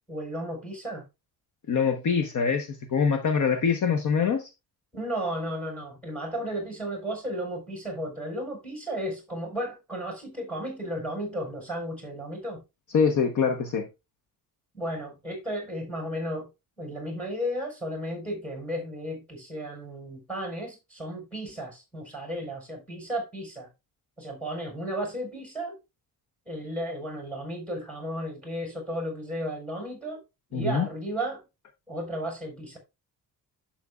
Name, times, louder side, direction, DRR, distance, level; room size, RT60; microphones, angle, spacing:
voice 1, 0.1-1.0 4.9-12.6 14.7-16.5 16.8-23.7 24.2-25.8 26.5-30.2 30.5-31.4 31.9-32.8, equal, 5° left, 4.6 m, -34 dB
voice 2, 1.7-4.5 12.9-13.9 30.5-30.9, left 6 dB, 55° left, 1.0 m, -24 dB
10.5 x 7.8 x 2.4 m
wide cardioid pair, 170°, 37 cm